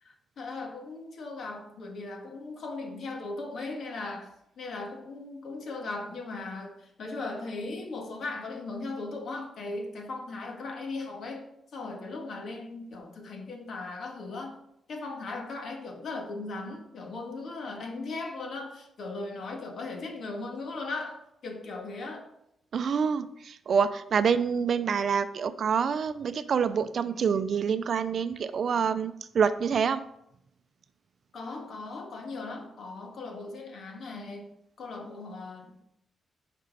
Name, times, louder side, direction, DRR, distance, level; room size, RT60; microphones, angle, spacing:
voice 1, 0.0-14.5 14.9-22.3 31.3-35.8, left 3 dB, 60° left, 3 dB, 1.7 m, -38 dB
voice 2, 22.7-30.0, right 6 dB, 55° right, 12 dB, 0.5 m, -27 dB
10.0 x 5.4 x 4.1 m, 0.78 s
wide cardioid pair, 145°, 0 cm